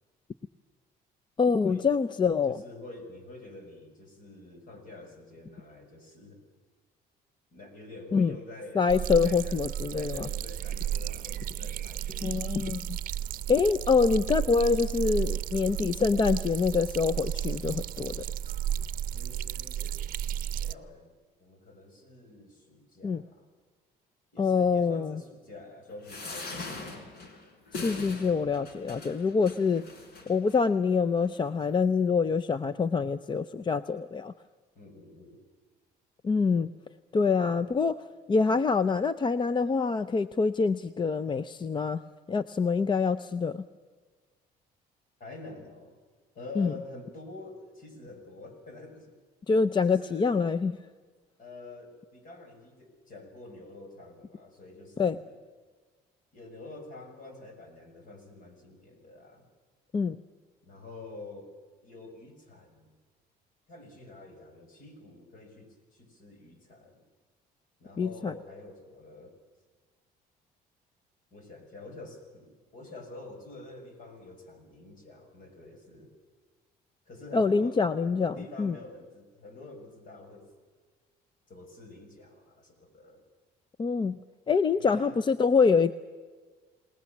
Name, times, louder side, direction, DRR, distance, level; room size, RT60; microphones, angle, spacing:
voice 1, 1.4-2.6 8.1-8.3 8.8-10.3 12.2-13.0 13.5-18.2 23.0-23.2 24.4-25.2 27.7-29.8 30.3-34.3 36.2-36.7 37.1-38.0 38.3-42.0 42.3-43.7 46.6-46.7 49.5-50.7 55.0-55.2 59.9-60.2 68.0-68.3 77.3-78.8 83.8-84.2 84.5-85.9, left 5 dB, 30° left, 14 dB, 0.6 m, -25 dB
voice 2, 2.5-6.4 7.5-8.9 9.2-12.9 19.1-23.4 24.3-27.1 34.7-35.4 45.2-45.9 46.3-49.1 49.8-50.5 51.4-55.4 56.3-59.5 60.6-61.5 61.8-62.9 63.7-67.0 67.8-69.3 71.3-76.1 77.1-80.5 81.5-83.2 84.8-85.2, left 2 dB, 55° left, 5 dB, 6.6 m, -47 dB
sound 1, 8.9-20.7, right 10 dB, 55° right, 0.7 m, -33 dB
sound 2, 26.0-30.6 31.2-31.3 31.6-31.7, left 3 dB, 70° left, 4.3 m, -41 dB
29.0 x 19.0 x 7.4 m, 1.4 s
cardioid pair, 110°, 17 cm